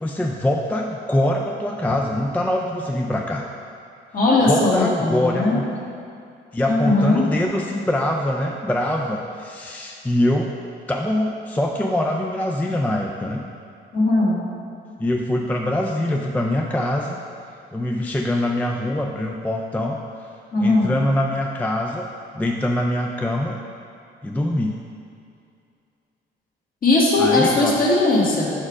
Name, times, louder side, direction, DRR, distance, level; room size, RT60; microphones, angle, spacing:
voice 1, 0.0-3.5 4.5-5.7 6.5-10.5 10.9-13.4 15.0-17.2 17.7-20.3 20.6-22.1 22.3-23.6 24.2-24.8 27.2-27.8, left 1 dB, 10° left, 1 dB, 0.3 m, -23 dB
voice 2, 4.1-5.6 6.7-7.2 13.9-14.4 20.5-20.9 26.8-28.5, left 2 dB, 45° left, -5 dB, 1.4 m, -18 dB
4.9 x 4.4 x 4.8 m, 2.5 s
cardioid pair, 90°, 20 cm